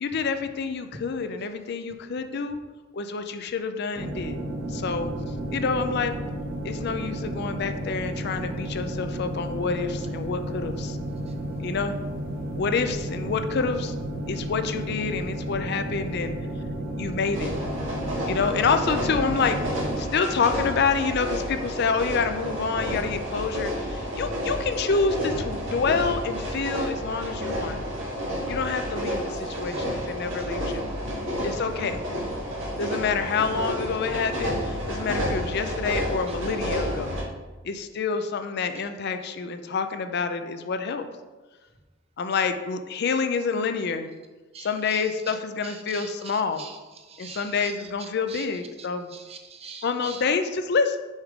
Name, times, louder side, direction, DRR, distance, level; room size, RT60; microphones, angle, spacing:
voice 1, 0.0-2.6 2.9-4.4 4.7-5.1 5.5-6.2 6.6-11.0 11.6-12.0 12.6-14.0 14.3-16.4 17.0-17.5 18.2-19.6 20.0-27.8 28.5-30.9 31.4-32.0 32.8-37.1 37.6-41.0 42.2-44.1 44.6-46.6 47.2-49.1 49.8-51.0, left 5 dB, 55° left, 9 dB, 0.4 m, -27 dB
sound 1, 4.0-20.0, right 1 dB, 45° right, 1.3 m, -32 dB
sound 2, 17.3-37.2, equal, 70° right, 1.6 m, -30 dB
voice 2, 29.5-29.9 30.4-30.5 38.7-38.9 44.5-45.3 45.6-48.5 48.8-50.3, right 5 dB, 30° right, 5 dB, 0.6 m, -44 dB
6.3 x 3.6 x 4.8 m, 1.2 s
head